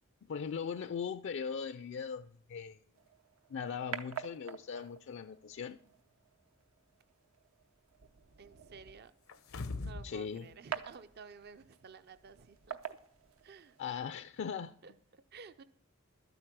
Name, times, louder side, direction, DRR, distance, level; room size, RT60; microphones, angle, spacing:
voice 1, 0.3-2.8 3.5-5.8 10.0-10.5 13.8-14.7, left 6 dB, 60° left, 0.4 m, -39 dB
sound 1, 3.0-13.9, right 8 dB, 80° right, 0.7 m, -48 dB
voice 2, 8.4-9.1 9.8-13.0 13.4-13.8 14.8-15.6, right 5 dB, 50° right, 0.5 m, -53 dB
sound 2, 9.3-10.2 10.5-10.6, left 3 dB, 90° left, 0.8 m, -40 dB
12.5 x 8.0 x 6.0 m
head